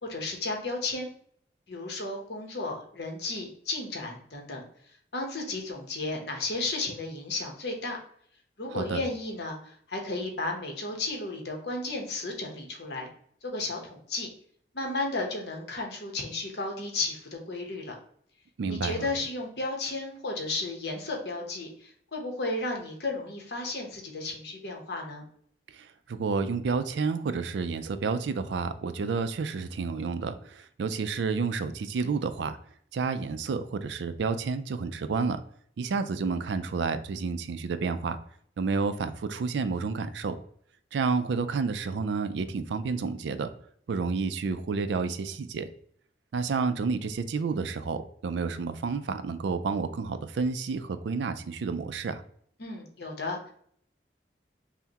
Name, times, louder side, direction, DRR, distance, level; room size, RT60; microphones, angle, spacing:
voice 1, 0.0-1.1 1.7-4.6 5.1-8.0 8.6-13.1 13.4-14.3 14.7-17.9 18.7-25.2 52.6-53.5, left 2 dB, 65° left, 1 dB, 0.9 m, -33 dB
voice 2, 8.7-9.0 18.6-19.1 25.7-32.6 32.9-35.4 35.8-38.2 38.6-40.3 40.9-43.5 43.9-45.7 46.3-52.2, right 4 dB, 75° right, 10 dB, 0.4 m, -30 dB
5.6 x 2.1 x 2.8 m, 0.62 s
head